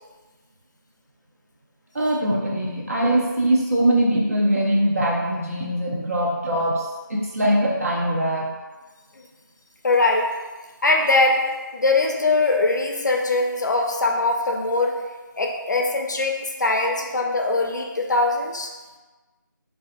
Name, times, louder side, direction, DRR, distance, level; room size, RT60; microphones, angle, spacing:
voice 1, 1.9-8.5, right 1 dB, 45° right, -4 dB, 0.5 m, -22 dB
voice 2, 9.8-10.3 10.8-11.4 11.7-15.0 15.4-16.3 16.6-18.7, left 2 dB, 60° left, 1 dB, 0.4 m, -21 dB
2.4 x 2.3 x 2.5 m, 1.2 s
figure-of-eight pair, 170°, 11 cm